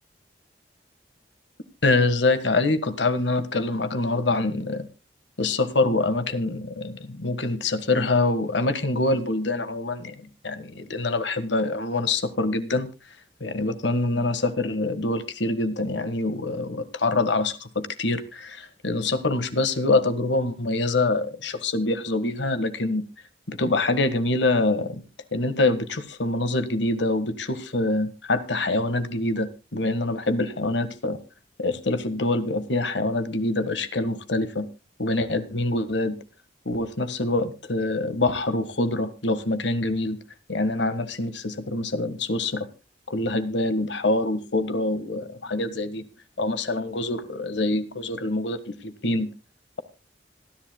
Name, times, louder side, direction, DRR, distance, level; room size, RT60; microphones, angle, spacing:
voice 1, 1.8-4.9 5.4-10.2 10.4-12.9 13.4-23.0 23.5-25.0 25.3-31.2 31.6-34.7 35.0-36.2 36.6-40.2 40.5-42.7 43.1-46.0 46.4-49.3, left 2 dB, 85° left, 13 dB, 1.6 m, -25 dB
26.0 x 11.0 x 2.2 m, 0.28 s
head